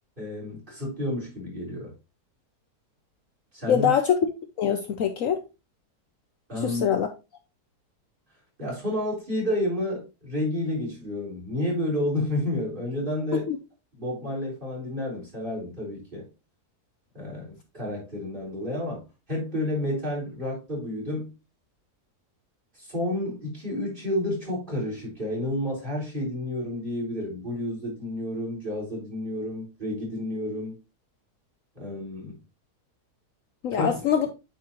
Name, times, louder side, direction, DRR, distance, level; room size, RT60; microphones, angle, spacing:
voice 1, 0.2-1.9 3.5-3.9 6.5-6.8 8.6-13.5 14.0-16.3 17.1-21.3 22.8-30.8 31.7-32.4 33.7-33.9, left 1 dB, 30° right, 3.9 m, -30 dB
voice 2, 3.7-4.2 4.6-5.4 6.6-7.1 13.5-13.6 33.6-34.3, left 8 dB, 65° left, 1.0 m, -23 dB
9.2 x 4.6 x 2.9 m
omnidirectional pair, 1.7 m